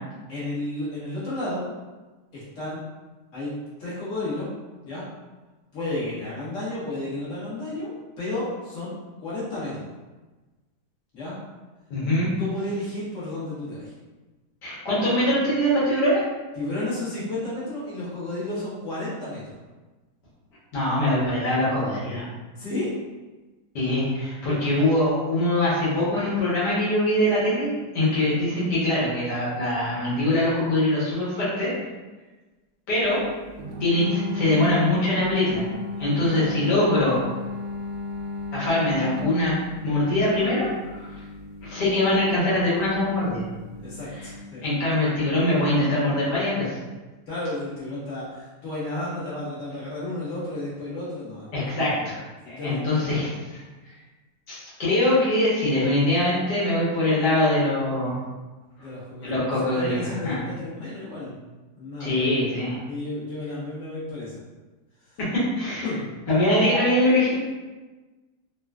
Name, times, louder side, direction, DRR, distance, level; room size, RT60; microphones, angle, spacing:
voice 1, 0.3-1.7 2.3-2.8 3.3-3.5 3.8-4.5 4.8-5.1 5.7-9.9 11.1-11.4 12.4-13.9 16.5-19.6 22.6-22.9 28.2-28.4 36.3-36.5 43.8-44.6 47.3-51.5 51.9-52.1 52.4-53.2 58.8-61.4 61.8-62.2 62.9-64.4 65.0-65.2 65.8-66.1, left 2 dB, 50° left, -10 dB, 1.6 m, -32 dB
voice 2, 11.9-12.3 14.6-16.2 20.7-22.2 23.7-31.7 32.9-33.2 33.8-35.7 36.0-37.2 38.5-39.6 39.8-40.7 41.0-41.1 41.6-43.4 44.6-46.8 51.5-52.2 52.5-53.6 54.5-58.2 59.2-60.4 62.0-62.8 65.2-65.9 66.3-67.4, left 1 dB, 80° left, -9 dB, 1.6 m, -23 dB
sound 1, 33.6-44.4, left 3 dB, 75° right, 1.1 m, -35 dB
3.8 x 2.2 x 2.3 m, 1.2 s
omnidirectional pair, 1.8 m